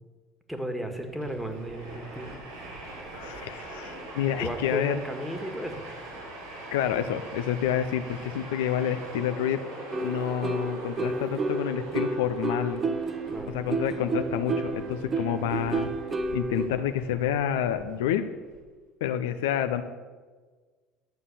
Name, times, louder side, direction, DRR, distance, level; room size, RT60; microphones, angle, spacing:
voice 1, 0.5-2.3 4.3-5.9 13.3-13.6, equal, 5° right, 5 dB, 1.8 m, -34 dB
Train, 1.0-18.6, right 2 dB, 75° right, 3.6 m, -43 dB
voice 2, 3.1-5.0 6.7-9.6 10.0-12.8 13.5-15.9 16.3-18.2 19.0-19.8, left 10 dB, 70° left, 9 dB, 0.5 m, -28 dB
sound 1, 9.9-16.7, right 3 dB, 30° right, 1.0 m, -31 dB
11.5 x 6.9 x 7.0 m, 1.4 s
figure-of-eight pair, 65°, 0 cm